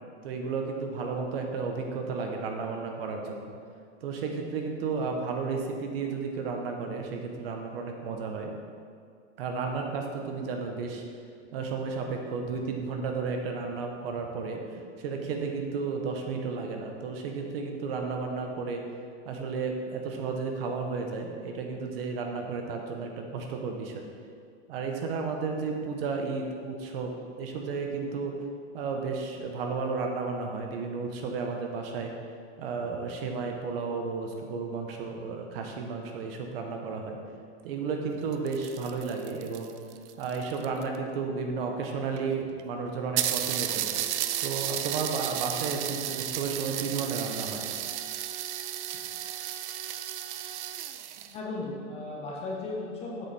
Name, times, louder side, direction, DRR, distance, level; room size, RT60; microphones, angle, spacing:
voice 1, 0.2-3.5 4.0-8.5 9.4-11.0 11.5-18.8 19.2-24.0 24.7-27.1 27.4-28.3 28.7-32.1 32.6-37.2 37.6-39.7 40.2-43.9 44.4-47.7, right 4 dB, 55° right, 3 dB, 1.0 m, -33 dB
sound 1, 38.2-41.0 41.8-41.9 42.2-42.3 42.6-42.7 43.2-51.3, right 11 dB, 70° right, 0.5 m, -33 dB
voice 2, 51.3-53.3, left 2 dB, 15° left, -3 dB, 0.7 m, -36 dB
7.3 x 5.4 x 4.1 m, 2.2 s
supercardioid pair, 155°, 36 cm